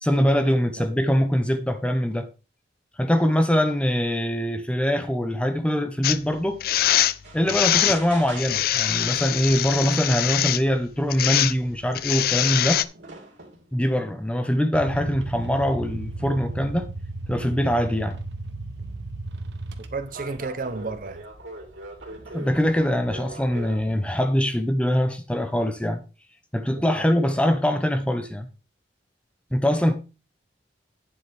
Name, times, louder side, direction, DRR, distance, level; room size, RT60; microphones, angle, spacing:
voice 1, 0.0-2.3 3.0-6.6 7.3-12.8 13.7-16.9 17.3-18.2 22.3-26.0 26.5-28.5 29.5-29.9, equal, 5° left, 0.8 m, -23 dB
sound 1, 6.0-6.2 6.6-7.1 7.5-8.0 8.4-10.6 11.1-11.5 11.9-12.8, left 12 dB, 55° left, 0.4 m, -23 dB
sound 2, 7.2-8.8 9.8-9.9 10.6-10.7 11.0-11.8 12.6-13.7 14.6-16.2 18.8-19.0 20.0-23.9, right 2 dB, 90° right, 2.6 m, -42 dB
sound 3, 14.7-20.3, right 2 dB, 75° right, 1.0 m, -35 dB
voice 2, 19.9-21.2 26.7-27.1, right 3 dB, 50° right, 0.7 m, -32 dB
9.3 x 7.7 x 3.4 m
head